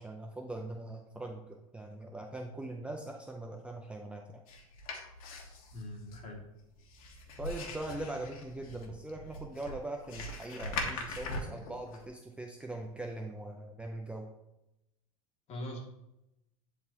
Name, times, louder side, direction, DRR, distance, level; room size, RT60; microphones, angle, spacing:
voice 1, 0.0-4.4 7.4-14.3, right 2 dB, 5° right, 2 dB, 0.6 m, -41 dB
sound 1, 4.5-12.1, left 2 dB, 70° left, 1.6 m, -41 dB
voice 2, 5.7-6.4 15.5-15.8, left 1 dB, 35° left, -1 dB, 2.3 m, -41 dB
10.5 x 4.1 x 2.9 m, 0.89 s
hypercardioid pair, 110°, 19 cm